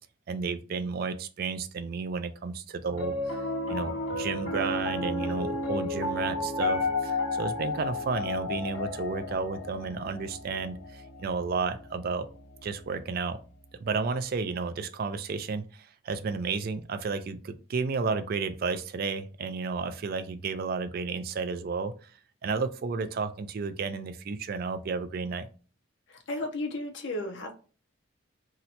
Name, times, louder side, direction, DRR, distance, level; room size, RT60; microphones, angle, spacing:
voice 1, 0.3-3.2 3.7-12.3 12.6-13.4 13.8-22.1 22.4-25.5, right 4 dB, 50° right, 9 dB, 0.3 m, -32 dB
Piano, 2.9-13.3, left 2 dB, 80° left, 0.8 m, -33 dB
voice 2, 26.1-27.5, left 1 dB, 60° left, 3 dB, 0.5 m, -34 dB
2.8 x 2.1 x 4.0 m, 0.37 s
head